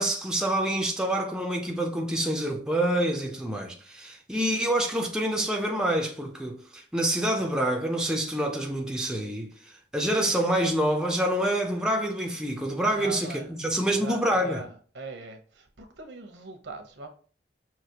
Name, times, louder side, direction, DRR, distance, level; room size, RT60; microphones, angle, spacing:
voice 1, 0.0-9.5 9.9-14.6, right 1 dB, 5° right, 0.5 m, -27 dB
voice 2, 12.9-13.6 13.9-17.1, right 3 dB, 75° right, 0.9 m, -41 dB
5.8 x 2.9 x 2.8 m
head